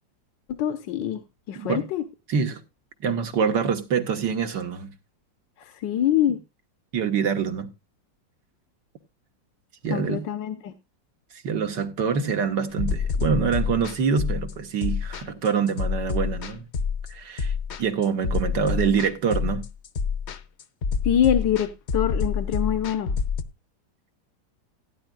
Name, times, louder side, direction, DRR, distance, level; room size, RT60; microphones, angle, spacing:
voice 1, 0.6-1.2 1.5-2.0 5.7-6.4 9.9-10.7 21.0-23.1, left 10 dB, 80° left, 1.7 m, -24 dB
voice 2, 1.5-1.8 2.3-2.6 3.0-4.9 6.9-7.7 9.8-10.2 11.3-16.7 17.1-19.6, right 6 dB, 75° right, 2.1 m, -25 dB
sound 1, 12.8-23.4, left 5 dB, 50° left, 0.9 m, -27 dB
16.5 x 10.0 x 2.4 m
omnidirectional pair, 1.9 m